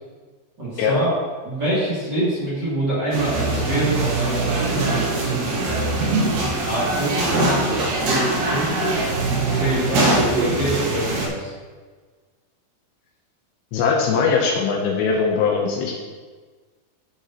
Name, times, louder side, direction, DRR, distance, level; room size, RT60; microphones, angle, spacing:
voice 1, 0.6-1.1 1.4-6.1 6.6-7.8 8.0-9.0 9.5-11.5, right 1 dB, 30° right, -8 dB, 2.5 m, -25 dB
sound 1, 3.1-11.3, right 2 dB, 60° right, 2.4 m, -22 dB
voice 2, 13.7-16.0, left 5 dB, 75° left, 0 dB, 2.9 m, -20 dB
14.5 x 7.9 x 3.0 m, 1.4 s
omnidirectional pair, 5.4 m